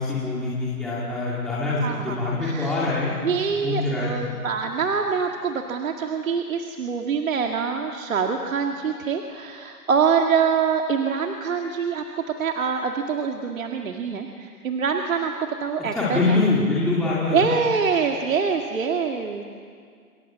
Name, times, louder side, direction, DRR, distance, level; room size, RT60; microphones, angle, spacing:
voice 1, 0.0-3.2 3.6-4.2 15.9-17.5, left 3 dB, ahead, -8 dB, 2.3 m, -24 dB
voice 2, 1.8-2.8 3.2-16.4 17.3-19.4, right 6 dB, 55° right, 3 dB, 2.0 m, -25 dB
28.0 x 23.5 x 7.4 m, 2.1 s
hypercardioid pair, 165°, 47 cm